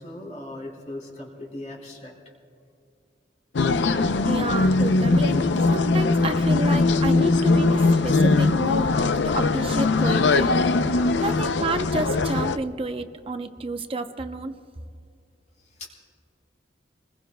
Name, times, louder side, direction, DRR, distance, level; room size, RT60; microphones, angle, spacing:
voice 1, 0.0-2.1 11.2-11.4 15.8-15.9, left 1 dB, 40° left, -1 dB, 3.2 m, -38 dB
sound 1, 3.5-12.6, left 3 dB, 80° left, 0.5 m, -21 dB
voice 2, 4.2-5.4 5.7-8.9 9.2-10.5 11.2-14.6, right 3 dB, 30° right, 8 dB, 0.7 m, -30 dB
28.0 x 20.5 x 2.2 m, 2.4 s
head